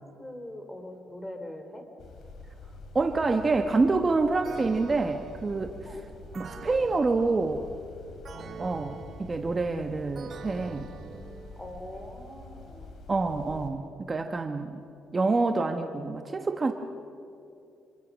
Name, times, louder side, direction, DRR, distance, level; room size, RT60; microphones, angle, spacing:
voice 1, 0.2-1.9 5.9-6.0 8.3-8.6 11.6-12.9, left 1 dB, 15° left, 6 dB, 3.7 m, -42 dB
sound 1, 2.0-13.7, left 3 dB, 70° left, 3.3 m, -46 dB
voice 2, 2.9-6.0 6.3-7.8 8.6-10.9 13.1-14.8 15.1-16.7, right 3 dB, 30° right, 6 dB, 1.2 m, -27 dB
sound 2, 4.4-12.1, right 6 dB, 55° right, 1.3 m, -46 dB
27.0 x 23.0 x 6.3 m, 2.6 s
cardioid pair, 90°, 0 cm